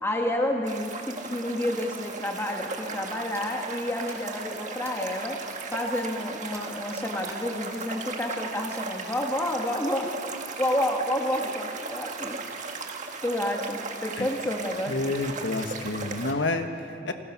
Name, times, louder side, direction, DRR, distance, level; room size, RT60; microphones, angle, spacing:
voice 1, 0.0-5.4 5.7-10.1 10.6-12.4 13.2-15.2, left 1 dB, 10° left, 1 dB, 1.5 m, -29 dB
sound 1, 0.6-16.3, right 4 dB, 40° right, 1.7 m, -37 dB
sound 2, 3.3-5.2 5.6-6.0 6.4-7.8, right 2 dB, 15° right, 3.1 m, -48 dB
voice 2, 14.9-17.1, left 2 dB, 60° left, 6 dB, 1.3 m, -29 dB
29.0 x 20.0 x 6.1 m, 2.6 s
head